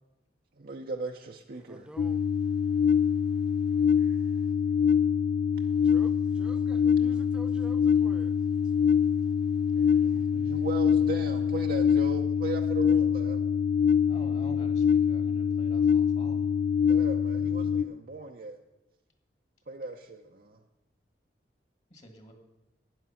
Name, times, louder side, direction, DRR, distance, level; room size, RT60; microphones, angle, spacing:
voice 1, 0.6-1.9 4.0-4.2 9.8-13.4 16.8-18.6 19.7-20.6, right 3 dB, 55° right, 0.7 m, -38 dB
voice 2, 1.7-2.2 5.8-8.4 8.6-8.7, right 1 dB, 5° right, 0.4 m, -48 dB
sound 1, 2.0-17.8, left 7 dB, 55° left, 0.4 m, -25 dB
voice 3, 14.1-16.5 21.9-22.3, equal, 40° left, 1.6 m, -47 dB
12.5 x 9.3 x 5.7 m
head